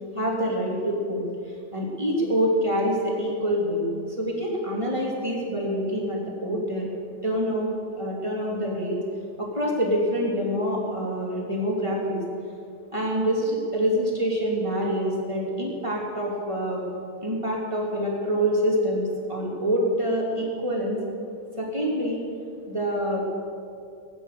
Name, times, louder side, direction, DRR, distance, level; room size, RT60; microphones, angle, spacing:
voice 1, 0.2-1.3 1.7-3.8 4.2-6.9 7.2-7.7 8.0-9.0 9.4-12.2 12.9-16.8 17.2-21.0 21.6-22.2 22.7-23.2, equal, 10° right, -3 dB, 2.1 m, -26 dB
21.0 x 9.4 x 6.9 m, 2.4 s
omnidirectional pair, 5.1 m